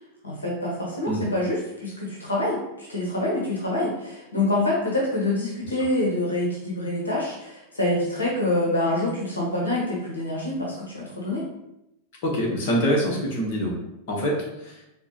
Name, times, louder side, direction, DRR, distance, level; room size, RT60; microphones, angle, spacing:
voice 1, 0.2-11.4, left 1 dB, 75° left, -3 dB, 0.8 m, -26 dB
voice 2, 12.2-13.7 14.1-14.8, equal, 50° left, -2 dB, 0.9 m, -25 dB
4.2 x 2.1 x 2.9 m, 0.86 s
figure-of-eight pair, 90°, 0 cm